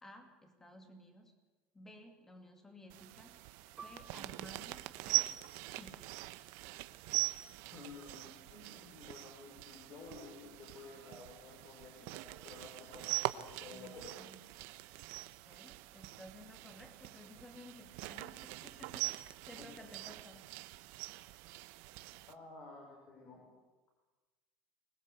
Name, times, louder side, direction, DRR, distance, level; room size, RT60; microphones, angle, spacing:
voice 1, 0.0-1.3 1.7-3.4 3.8-6.2 13.7-14.4 15.5-20.5, left 1 dB, 10° left, 5 dB, 2.7 m, -55 dB
sound 1, 2.9-22.3, right 20 dB, 65° right, 1.0 m, -42 dB
Piano, 3.8-8.8 9.2-9.3 10.1-10.5, right 5 dB, 20° right, 1.1 m, -59 dB
voice 2, 7.7-14.1 19.6-19.7 22.3-23.4, left 3 dB, 45° left, 0 dB, 5.9 m, -52 dB
25.5 x 20.5 x 8.0 m, 1.2 s
cardioid pair, 170°, 4 cm